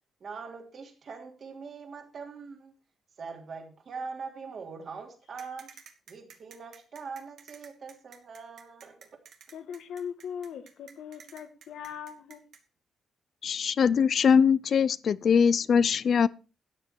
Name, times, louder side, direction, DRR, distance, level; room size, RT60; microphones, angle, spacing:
voice 1, 0.2-2.7 3.2-5.7 6.1-9.2, right 5 dB, 45° right, 3.2 m, -42 dB
sound 1, 5.4-12.6, right 7 dB, 70° right, 2.1 m, -51 dB
voice 2, 9.5-12.4, left 8 dB, 75° left, 1.8 m, -40 dB
voice 3, 13.4-16.3, left 6 dB, 50° left, 0.5 m, -22 dB
12.5 x 10.0 x 4.6 m
cardioid pair, 140°, 0 cm